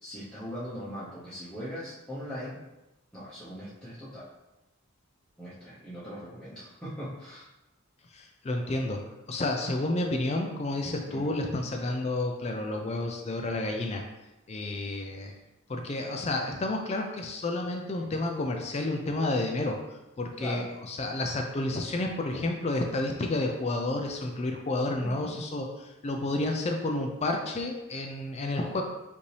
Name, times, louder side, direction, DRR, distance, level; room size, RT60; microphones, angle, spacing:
voice 1, 0.0-2.6 3.1-4.3 5.4-7.5 11.1-11.3 20.4-20.7 25.0-25.4, equal, 5° left, -11 dB, 0.8 m, -40 dB
voice 2, 8.1-9.0 9.3-14.0 14.5-15.3 15.7-19.8 20.2-28.8, left 2 dB, 30° left, 3 dB, 0.4 m, -30 dB
5.1 x 2.7 x 3.2 m, 0.99 s
head